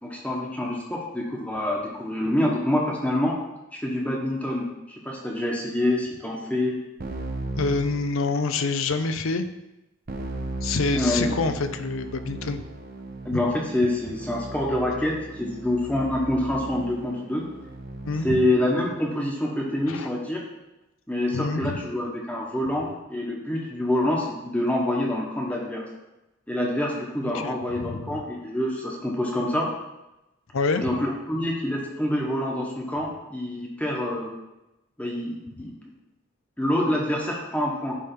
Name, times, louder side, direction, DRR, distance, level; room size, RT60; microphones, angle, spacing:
voice 1, 0.0-3.4 3.7-6.8 10.9-11.3 13.2-17.4 18.2-20.4 21.1-25.9 26.5-29.7 30.8-34.3 35.0-35.7 36.6-37.9, left 1 dB, 5° left, -2 dB, 1.1 m, -26 dB
Keyboard (musical), 7.0-8.7 10.1-18.5, right 2 dB, 45° right, 0.7 m, -36 dB
voice 2, 7.6-9.5 10.6-12.6 13.3-13.4 18.0-18.5 19.9-20.1 21.3-21.8 27.3-28.2 30.5-31.0, left 3 dB, 75° left, 9 dB, 0.6 m, -27 dB
10.0 x 3.4 x 5.3 m, 0.95 s
head